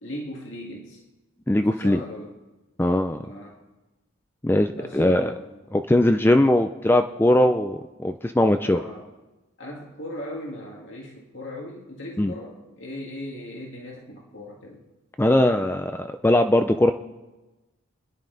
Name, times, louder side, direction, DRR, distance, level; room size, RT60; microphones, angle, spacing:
voice 1, 0.0-1.0 1.6-2.4 3.2-3.6 4.8-5.6 8.6-9.1 9.6-14.9, left 1 dB, 70° left, -1 dB, 2.0 m, -38 dB
voice 2, 1.5-2.0 2.8-3.2 4.4-5.3 5.7-8.8 12.2-12.3 15.2-16.9, left 1 dB, 10° left, 7 dB, 0.4 m, -20 dB
26.5 x 10.5 x 4.0 m, 1.1 s
head